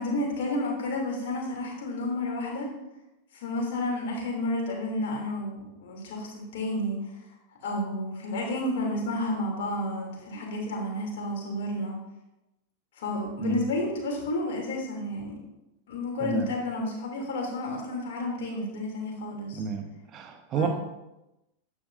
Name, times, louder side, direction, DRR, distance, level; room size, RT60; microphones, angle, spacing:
voice 1, 0.0-2.7 3.3-7.1 7.6-12.0 13.0-15.3 15.9-19.6 20.5-20.7, left 1 dB, 55° left, -1 dB, 3.0 m, -31 dB
voice 2, 16.2-16.5 19.5-19.9 20.1-20.7, right 5 dB, 30° right, 6 dB, 1.1 m, -30 dB
12.0 x 8.7 x 2.7 m, 0.94 s
figure-of-eight pair, 90°, 0 cm